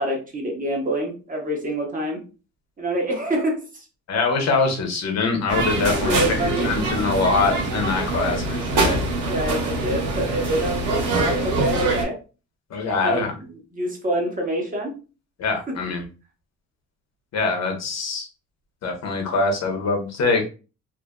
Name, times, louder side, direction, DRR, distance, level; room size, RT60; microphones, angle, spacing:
voice 1, 0.0-2.2 2.8-3.8 5.9-6.7 8.2-8.3 8.9-12.2 12.8-14.9 15.7-15.8, right 1 dB, 25° right, 0 dB, 1.2 m, -27 dB
voice 2, 4.1-9.0 12.7-13.3 15.4-16.0 17.3-18.3 18.8-20.4, left 3 dB, 60° left, 3 dB, 1.0 m, -23 dB
sound 1, 5.5-12.0, right 2 dB, 85° right, 1.2 m, -24 dB
2.7 x 2.5 x 2.2 m, 0.33 s
cardioid pair, 90°, 30 cm